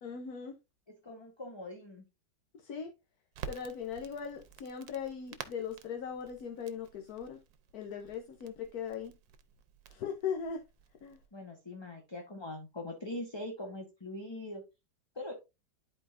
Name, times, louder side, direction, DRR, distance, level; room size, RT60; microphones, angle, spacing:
voice 1, 0.0-0.5 2.5-2.9 3.5-7.4 7.7-9.1 9.9-10.6 11.0-11.2, left 7 dB, 60° left, 1.3 m, -39 dB
voice 2, 0.9-2.0 11.3-14.6 15.1-15.3, left 1 dB, 15° left, 1.1 m, -42 dB
Crackle, 3.3-11.3, right 8 dB, 85° right, 1.5 m, -51 dB
11.5 x 4.4 x 2.5 m
omnidirectional pair, 2.0 m